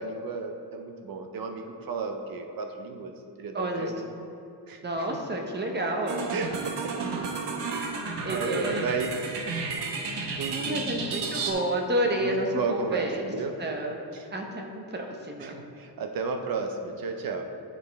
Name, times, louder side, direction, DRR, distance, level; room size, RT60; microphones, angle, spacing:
voice 1, 0.0-3.1 3.4-4.0 4.7-5.1 6.3-6.9 7.7-8.0 8.3-9.2 10.4-10.9 12.2-13.6 14.1-14.3 15.4-17.4, right 4 dB, 55° right, 5 dB, 0.7 m, -33 dB
voice 2, 3.5-3.9 4.8-6.3 8.2-8.9 10.1-13.2 13.6-13.9 14.3-15.6, right 1 dB, 25° right, 2 dB, 0.8 m, -30 dB
sound 1, 6.1-11.5, right 4 dB, 75° right, 1.0 m, -32 dB
11.0 x 4.9 x 3.4 m, 2.6 s
wide cardioid pair, 140°, 42 cm